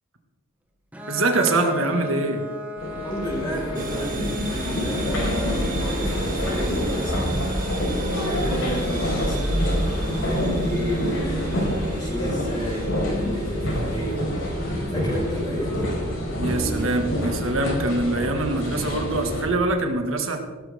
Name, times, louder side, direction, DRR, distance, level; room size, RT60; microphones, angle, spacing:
Bowed string instrument, 0.9-6.5, left 3 dB, 10° right, 1.8 m, -37 dB
voice 1, 1.1-2.4 16.4-20.4, right 2 dB, 75° right, 4 dB, 2.1 m, -24 dB
sound 1, 2.8-19.5, equal, 80° left, 5.0 m, -27 dB
voice 2, 3.0-7.3 8.1-9.5 10.0-14.2 14.9-15.9, equal, 20° left, -7 dB, 5.4 m, -31 dB
sound 2, 3.7-19.1, right 2 dB, 45° right, 2.1 m, -35 dB
16.5 x 13.5 x 3.7 m, 1.4 s
head